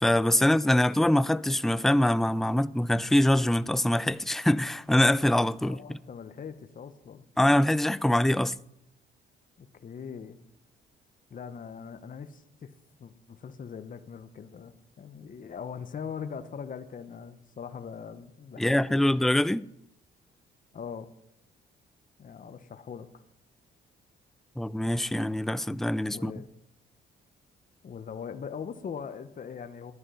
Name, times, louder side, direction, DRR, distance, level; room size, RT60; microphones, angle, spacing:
voice 1, 0.0-5.8 7.4-8.5 18.6-19.6 24.6-26.3, left 1 dB, ahead, 0.4 m, -24 dB
voice 2, 5.6-7.2 9.6-10.4 11.3-12.7 13.0-19.1 20.7-21.1 22.2-23.2 26.1-26.5 27.8-29.9, left 7 dB, 45° left, 1.0 m, -41 dB
12.5 x 11.0 x 5.6 m
cardioid pair, 90°, 20 cm